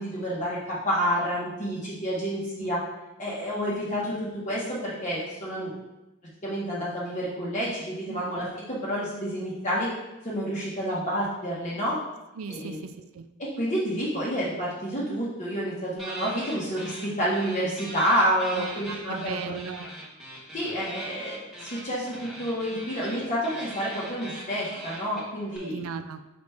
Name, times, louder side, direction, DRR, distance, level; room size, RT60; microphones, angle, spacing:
voice 1, 0.0-2.8 3.2-5.7 6.4-9.9 10.2-12.0 12.5-12.8 13.4-19.4 20.5-25.8, equal, 35° left, -7 dB, 1.3 m, -29 dB
voice 2, 12.4-13.3 18.5-19.9 25.6-26.2, right 6 dB, 90° right, 10 dB, 0.4 m, -37 dB
sound 1, 16.0-17.1 17.3-25.6, right 1 dB, ahead, 1.2 m, -41 dB
6.1 x 5.0 x 3.4 m, 1.0 s
head